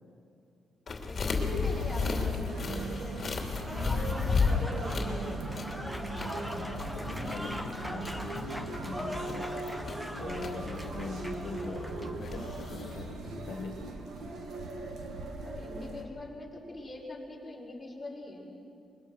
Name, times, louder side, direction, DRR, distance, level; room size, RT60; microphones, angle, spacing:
sound 1, 0.9-13.0, left 4 dB, 40° left, 3.0 m, -34 dB
voice 1, 0.9-3.5 4.4-5.7 15.4-18.5, left 2 dB, 15° left, -4 dB, 5.6 m, -42 dB
sound 2, 1.4-16.0, right 2 dB, 75° right, 2.5 m, -39 dB
Applause / Crowd, 3.4-12.2, equal, 5° right, 1.3 m, -42 dB
voice 2, 3.7-4.2 5.2-5.3 6.5-9.8 10.1-13.2 13.5-13.7, left 4 dB, 75° left, 3 dB, 1.9 m, -42 dB
25.0 x 22.0 x 6.4 m, 2.6 s
cardioid pair, 125°, 0 cm